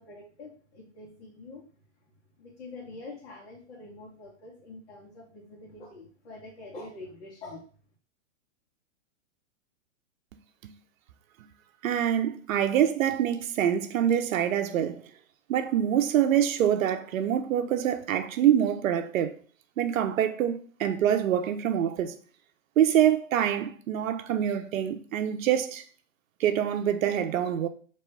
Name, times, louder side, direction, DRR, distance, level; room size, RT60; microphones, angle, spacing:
voice 1, 0.0-1.7 2.0-2.1 2.4-7.7, left 2 dB, 50° left, 1.4 m, -45 dB
voice 2, 11.8-15.0 15.5-19.4 19.8-22.2 22.8-25.8 26.4-27.7, right 10 dB, 80° right, 0.7 m, -25 dB
3.0 x 3.0 x 4.6 m
hypercardioid pair, 165°, 40 cm